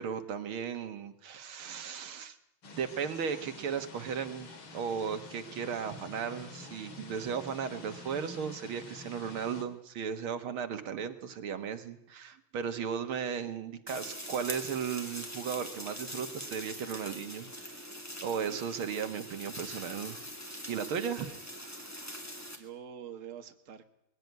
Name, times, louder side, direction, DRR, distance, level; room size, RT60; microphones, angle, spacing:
voice 1, 0.0-2.4 2.7-17.8 18.2-21.3 21.6-22.2, right 7 dB, 85° right, 8 dB, 2.3 m, -36 dB
sound 1, 2.6-9.6, left 3 dB, 75° left, 3.1 m, -48 dB
sound 2, 13.9-22.6, equal, 10° left, 2.3 m, -43 dB
voice 2, 20.6-21.4 21.7-22.2 22.5-23.9, right 8 dB, 40° right, 7 dB, 1.6 m, -48 dB
21.5 x 16.0 x 9.4 m, 0.85 s
omnidirectional pair, 2.2 m